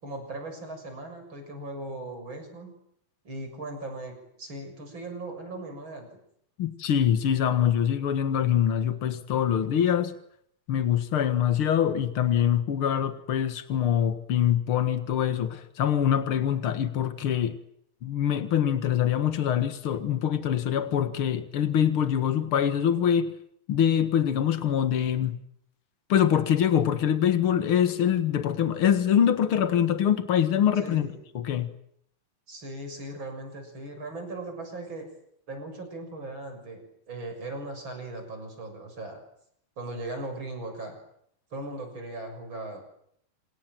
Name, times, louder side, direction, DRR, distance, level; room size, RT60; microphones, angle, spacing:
voice 1, 0.0-2.7 3.2-6.1 30.8-31.2 32.5-35.1 35.5-39.2 39.8-41.0 41.5-42.8, right 2 dB, 25° right, 7.3 m, -38 dB
voice 2, 6.6-10.1 10.7-17.6 18.0-23.3 23.7-25.4 26.1-31.7, left 9 dB, 75° left, 1.2 m, -24 dB
28.5 x 27.0 x 7.7 m
omnidirectional pair, 5.0 m